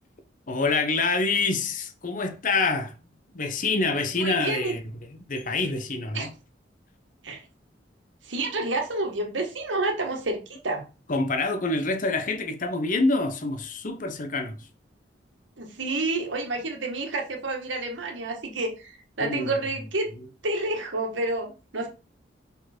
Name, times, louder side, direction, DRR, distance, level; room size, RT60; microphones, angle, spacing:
voice 1, 0.5-3.0 3.3-4.9 5.3-6.3 11.1-14.7 19.2-19.6, left 3 dB, 45° left, 0.8 m, -26 dB
voice 2, 4.2-4.7 6.1-6.3 7.2-7.4 8.2-10.8 15.6-20.1 20.4-21.9, right 2 dB, 90° right, 1.6 m, -29 dB
5.3 x 4.5 x 4.4 m
head